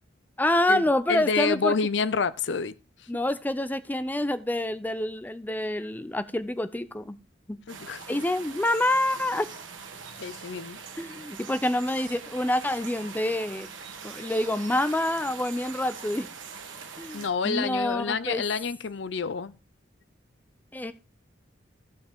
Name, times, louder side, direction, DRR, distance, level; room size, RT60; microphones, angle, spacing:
voice 1, 0.4-1.7 3.1-7.2 7.5-7.6 8.1-9.5 11.0-13.7 14.0-16.3 17.0-18.4 20.7-20.9, left 1 dB, 10° left, 0.5 m, -27 dB
voice 2, 1.1-2.7 7.7-8.0 10.2-10.8 17.1-19.5, left 5 dB, 70° left, 0.6 m, -28 dB
sound 1, 7.7-17.3, right 6 dB, 90° right, 1.4 m, -42 dB
14.5 x 5.6 x 3.6 m
head